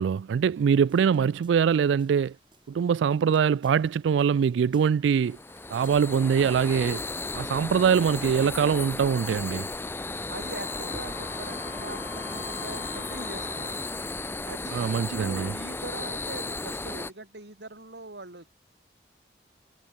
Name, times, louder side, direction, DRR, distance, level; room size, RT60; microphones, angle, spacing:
voice 1, 0.0-2.3 2.7-5.4 5.7-7.0 7.3-9.7 14.7-15.5, right 7 dB, 85° right, 0.3 m, -23 dB
sound 1, 0.7-9.7, right 3 dB, 25° right, 6.0 m, -61 dB
sound 2, 5.2-17.1, left 2 dB, 15° left, 0.6 m, -35 dB
voice 2, 10.2-13.9 14.2-18.5, right 2 dB, 70° right, 3.2 m, -42 dB
Wind instrument woodwind instrument, 10.4-14.3, left 6 dB, 85° left, 0.6 m, -45 dB
head